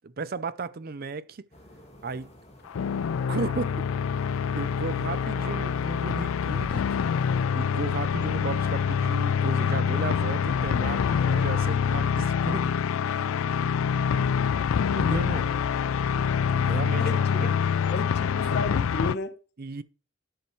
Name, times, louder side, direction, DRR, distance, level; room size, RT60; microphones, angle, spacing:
voice 1, 0.0-1.4 2.0-2.3 3.3-3.7 4.6-6.8 7.5-12.7 14.9-15.5 16.1-16.3 16.5-17.0 17.4-17.6 19.6-19.8, right 4 dB, 45° right, 0.5 m, -34 dB
sound 1, 1.5-7.5, left 1 dB, 30° left, 1.5 m, -52 dB
sound 2, 2.7-19.1, left 7 dB, 80° left, 0.4 m, -26 dB
voice 2, 17.0-17.6 17.9-19.4, left 3 dB, 50° left, 0.8 m, -33 dB
10.0 x 6.9 x 3.0 m
head